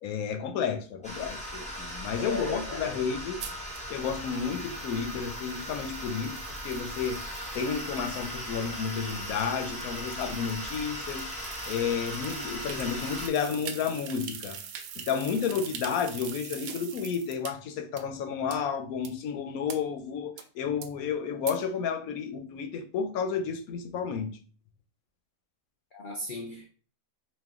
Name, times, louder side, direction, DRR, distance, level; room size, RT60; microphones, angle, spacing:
voice 1, 0.0-3.4 3.9-7.2 7.5-14.6 15.1-24.3, left 6 dB, 90° left, 1.1 m, -31 dB
sound 1, 1.0-13.3, equal, 5° left, 0.9 m, -38 dB
voice 2, 2.2-3.1 25.9-26.7, left 1 dB, 55° left, 0.6 m, -37 dB
sound 2, 3.4-17.5 18.0-18.1 18.5-18.6 19.0-19.1 19.7-19.8 20.4-20.5 20.8-20.9 21.5-21.6, right 8 dB, 85° right, 1.0 m, -44 dB
4.2 x 2.5 x 3.6 m
omnidirectional pair, 1.5 m